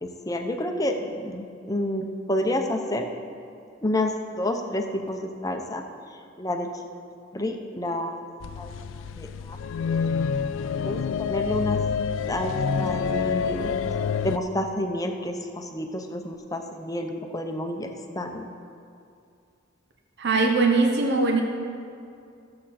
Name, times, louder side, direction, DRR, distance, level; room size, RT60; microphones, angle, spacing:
voice 1, 0.0-3.1 3.8-5.8 6.4-7.0 7.3-8.3 8.6-9.6 10.8-11.8 12.3-13.8 14.2-18.5, left 1 dB, 20° left, 4 dB, 0.8 m, -29 dB
sound 1, 8.4-14.4, left 6 dB, 75° left, 0.3 m, -27 dB
voice 2, 20.2-21.4, right 3 dB, 60° right, 1 dB, 1.1 m, -21 dB
15.0 x 7.7 x 4.3 m, 2.4 s
head